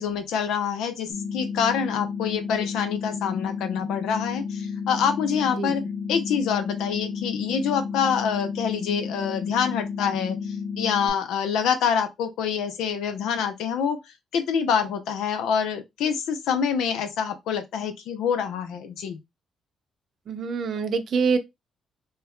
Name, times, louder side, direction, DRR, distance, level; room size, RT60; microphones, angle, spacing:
voice 1, 0.0-5.8 6.1-14.0 14.3-19.2, left 7 dB, 85° left, 0.6 m, -26 dB
sound 1, 1.1-11.1, left 6 dB, 60° left, 1.1 m, -32 dB
voice 2, 20.3-21.4, right 5 dB, 60° right, 0.6 m, -25 dB
2.9 x 2.3 x 3.4 m
cardioid pair, 90°, 0 cm